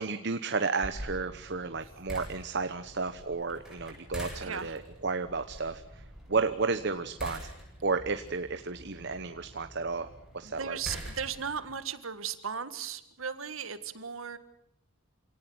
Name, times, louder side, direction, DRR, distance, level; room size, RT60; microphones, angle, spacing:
voice 1, 0.0-7.5 7.8-10.8, right 4 dB, 55° right, 10 dB, 1.0 m, -32 dB
sound 1, 0.8-11.7, equal, ahead, 8.0 m, -45 dB
voice 2, 4.4-4.7 10.4-14.4, right 7 dB, 70° right, 12 dB, 1.8 m, -37 dB
27.5 x 18.5 x 8.0 m, 0.78 s
head